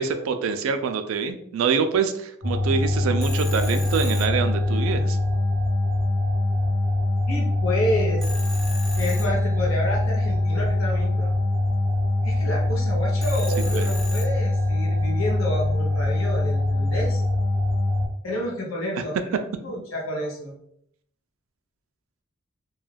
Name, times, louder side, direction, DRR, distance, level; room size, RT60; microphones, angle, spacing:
voice 1, 0.0-5.2 13.7-13.9, right 6 dB, 75° right, 7 dB, 0.3 m, -25 dB
sound 1, 2.4-18.1, left 2 dB, 45° left, 1.1 m, -23 dB
Telephone, 3.2-5.1 8.2-10.0 13.2-14.9, left 1 dB, ahead, 0.3 m, -38 dB
voice 2, 7.3-8.3 8.9-11.3 12.2-17.2 18.2-19.1 19.6-20.5, left 1 dB, 75° left, -3 dB, 0.7 m, -29 dB
2.3 x 2.2 x 3.2 m, 0.69 s
head